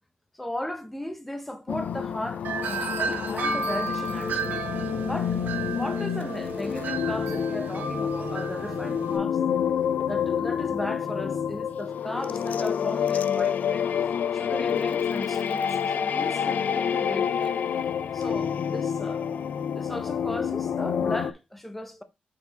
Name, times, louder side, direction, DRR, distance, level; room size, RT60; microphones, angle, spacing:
voice 1, 0.3-4.7 5.0-9.4 10.1-13.9 14.3-17.6 18.1-19.3 19.7-22.0, left 1 dB, 5° left, 0.8 m, -36 dB
sound 1, 1.7-21.3, left 8 dB, 55° left, 0.4 m, -28 dB
Wind chime, 2.4-9.2, right 4 dB, 90° right, 1.5 m, -33 dB
6.1 x 4.7 x 4.0 m
wide cardioid pair, 175°, 3 cm